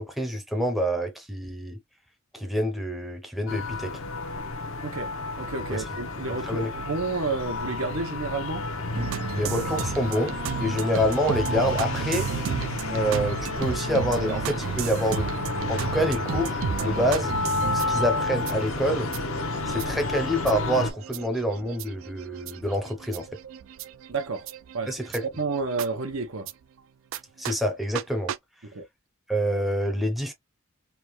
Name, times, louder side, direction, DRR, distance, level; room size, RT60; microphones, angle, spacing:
voice 1, 0.0-1.8 2.3-3.9 5.7-5.8 6.5-6.7 9.3-12.3 12.9-15.3 15.7-17.3 17.9-19.1 19.7-23.3 24.9-25.2 27.4-28.3 29.3-30.3, equal, ahead, 0.6 m, -27 dB
sound 1, 3.5-20.9, left 3 dB, 80° left, 0.8 m, -31 dB
voice 2, 4.8-8.7 24.1-24.5 24.7-25.0 25.4-26.5 28.6-28.8, right 4 dB, 90° right, 0.9 m, -31 dB
sound 2, 8.9-26.5 27.1-27.2 27.5-27.6 28.0-28.1 28.3-28.4, right 7 dB, 75° right, 0.4 m, -34 dB
3.5 x 2.2 x 3.1 m
head